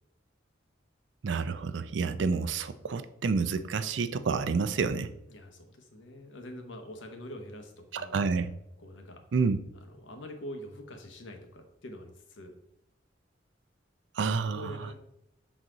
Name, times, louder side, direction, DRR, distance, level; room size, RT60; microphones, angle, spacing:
voice 1, 1.2-5.1 7.9-8.5 9.3-9.6 14.2-14.9, right 4 dB, 70° right, 11 dB, 0.4 m, -29 dB
voice 2, 5.3-8.2 8.8-9.2 9.7-12.5 14.5-14.9, left 1 dB, 85° left, 4 dB, 1.0 m, -45 dB
6.2 x 4.0 x 3.9 m, 0.83 s
head